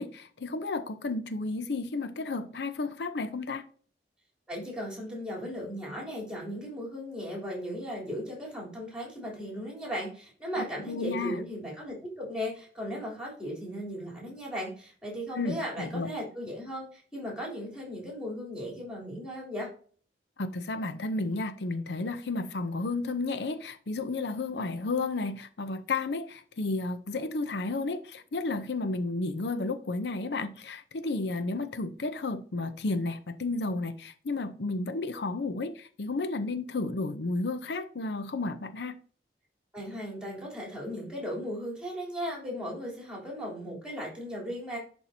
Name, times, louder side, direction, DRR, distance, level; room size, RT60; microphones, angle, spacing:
voice 1, 0.0-3.6 10.6-11.4 15.3-16.1 20.4-39.0, left 3 dB, 75° left, 0.6 m, -32 dB
voice 2, 4.5-19.7 39.7-44.8, equal, 5° right, 3.3 m, -37 dB
11.0 x 4.5 x 2.7 m
head